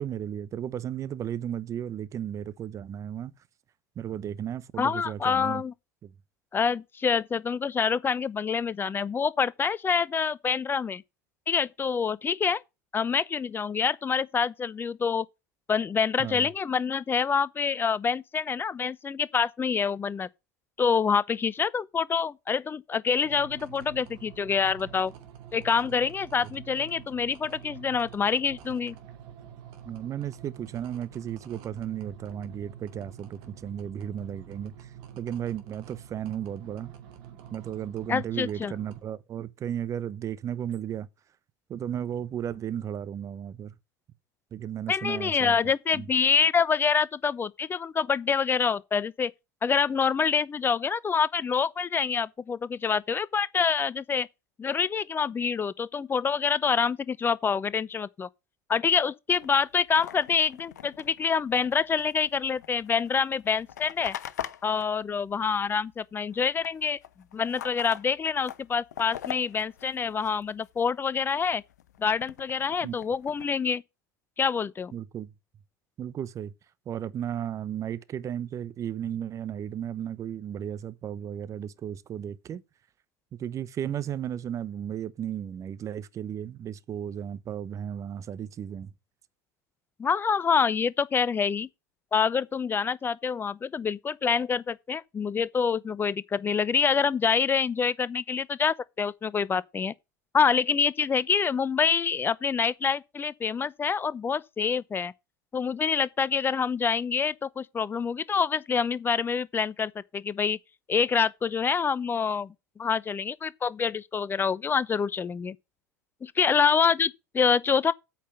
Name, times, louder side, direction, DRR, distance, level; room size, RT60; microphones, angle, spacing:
voice 1, 0.0-3.3 4.0-5.6 6.0-6.1 16.2-16.5 29.8-36.9 37.5-41.1 41.7-43.7 44.5-45.6 45.9-46.1 72.8-72.9 74.9-75.3 76.0-76.5 76.9-82.6 83.4-88.9, right 9 dB, 35° right, 0.9 m, -34 dB
voice 2, 4.8-5.7 6.5-11.0 11.5-12.6 12.9-15.3 15.7-20.3 20.8-25.1 25.5-28.9 38.1-38.7 44.9-49.3 49.6-54.3 54.6-58.3 58.7-64.2 64.6-67.0 67.3-71.6 72.0-73.8 74.4-74.9 90.0-91.7 92.1-99.9 100.3-105.1 105.5-110.6 110.9-115.6 116.2-117.9, left 6 dB, 25° left, 0.7 m, -26 dB
sound 1, 23.2-39.0, right 9 dB, 55° right, 2.7 m, -47 dB
sound 2, 59.4-66.0 66.2-70.8 71.3-73.5, left 11 dB, 75° left, 0.9 m, -43 dB
8.4 x 5.9 x 6.7 m
hypercardioid pair, 80°, 9 cm